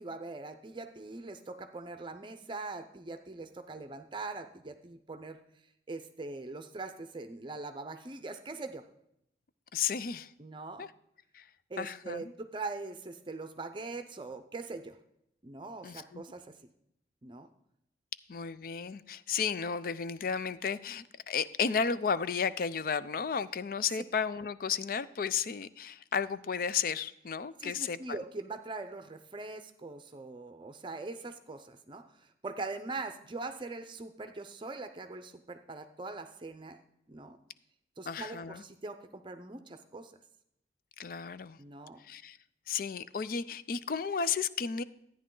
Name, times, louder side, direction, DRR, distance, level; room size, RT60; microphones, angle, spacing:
voice 1, 0.0-5.4 5.9-8.8 10.4-10.9 11.7-15.0 15.4-16.6 17.2-17.5 27.6-36.8 37.1-37.4 38.0-40.1 41.6-42.0, right 3 dB, 30° right, 8 dB, 0.6 m, -42 dB
voice 2, 9.7-10.3 10.8-10.9 11.3-11.4 11.8-12.3 15.8-16.2 18.3-28.2 38.1-38.6 41.0-41.6 42.0-42.4 42.7-44.8, left 6 dB, 55° left, 15 dB, 0.4 m, -33 dB
13.5 x 9.5 x 3.8 m, 0.77 s
head